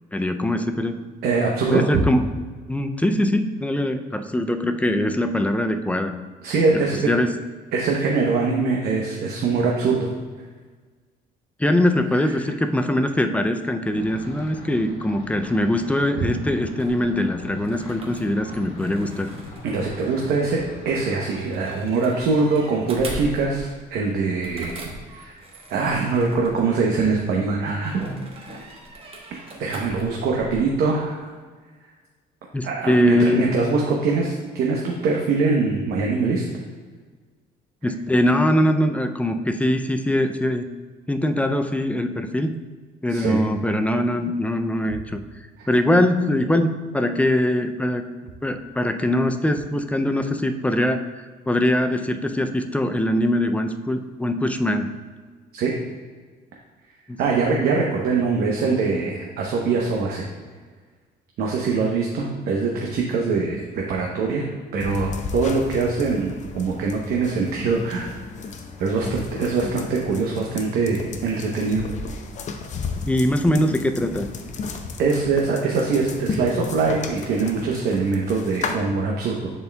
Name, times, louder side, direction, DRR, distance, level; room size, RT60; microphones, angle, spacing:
voice 1, 0.1-1.0 1.7-2.2 2.7-6.1 7.1-7.3 11.6-19.3 32.5-33.5 37.8-40.7 41.1-42.5 43.0-45.2 45.7-54.9 57.1-57.2 73.1-74.3, left 1 dB, 10° left, 7 dB, 0.4 m, -22 dB
voice 2, 1.2-2.1 6.4-7.0 7.7-10.1 16.2-16.3 19.6-25.3 25.7-28.0 29.6-31.3 32.6-36.4 43.1-43.4 45.6-45.7 55.5-55.7 57.2-60.3 61.4-68.1 68.8-71.9 75.0-79.5, right 4 dB, 70° right, -1 dB, 0.8 m, -23 dB
sound 1, 13.9-21.4, left 2 dB, 70° left, 1.6 m, -39 dB
sound 2, 16.6-27.1 27.8-30.6, right 1 dB, 35° right, 1.1 m, -40 dB
sound 3, 64.8-78.7, left 4 dB, 45° left, 0.6 m, -34 dB
10.5 x 4.3 x 2.2 m, 1.4 s
cardioid pair, 110°, 17 cm